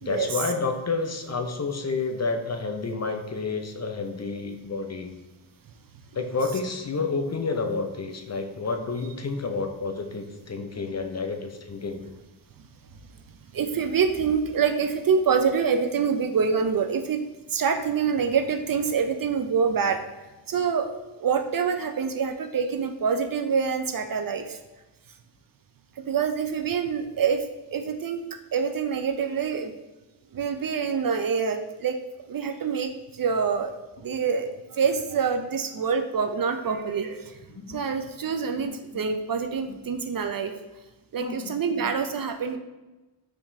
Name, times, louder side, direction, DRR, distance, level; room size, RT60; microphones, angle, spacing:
voice 1, 0.0-5.1 6.1-12.1 37.6-37.8 38.5-39.0 39.7-39.8 41.2-41.9, left 4 dB, 35° left, 5 dB, 0.5 m, -30 dB
voice 2, 13.5-17.2 17.5-20.0 20.5-20.9 21.2-24.6 26.0-27.5 27.7-28.2 28.5-29.7 30.3-32.0 32.3-37.4 37.7-40.5 41.1-42.6, right 6 dB, 45° right, 6 dB, 0.4 m, -26 dB
4.7 x 3.7 x 2.6 m, 1.1 s
cardioid pair, 50°, 49 cm